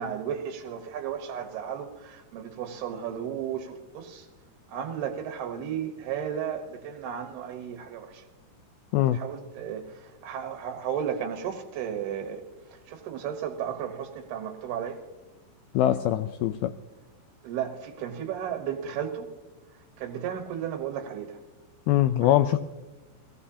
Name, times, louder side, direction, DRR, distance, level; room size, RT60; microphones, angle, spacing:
voice 1, 0.0-4.3 4.7-8.2 9.1-12.4 12.9-15.0 17.4-19.3 20.0-21.4 22.2-22.4, right 8 dB, 75° right, 5 dB, 2.9 m, -34 dB
voice 2, 15.7-16.7 21.9-22.6, left 12 dB, 85° left, 10 dB, 2.2 m, -22 dB
21.5 x 17.5 x 2.8 m, 1.1 s
omnidirectional pair, 4.9 m